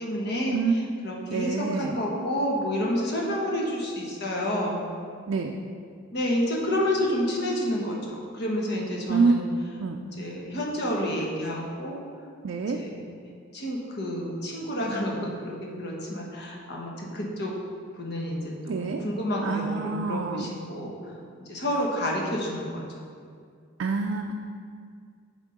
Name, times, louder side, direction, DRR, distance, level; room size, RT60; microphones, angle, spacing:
voice 1, 0.0-4.8 6.1-8.0 8.3-9.4 10.0-12.0 12.5-13.0 13.5-17.5 18.0-20.9 21.5-22.8, left 1 dB, 55° left, -2 dB, 1.2 m, -29 dB
voice 2, 1.3-2.0 5.3-5.5 9.1-9.3 9.8-10.0 12.4-12.8 18.7-19.0 19.4-20.5 23.8-24.3, right 4 dB, 65° right, 2 dB, 0.4 m, -26 dB
8.1 x 3.6 x 5.1 m, 2.2 s
head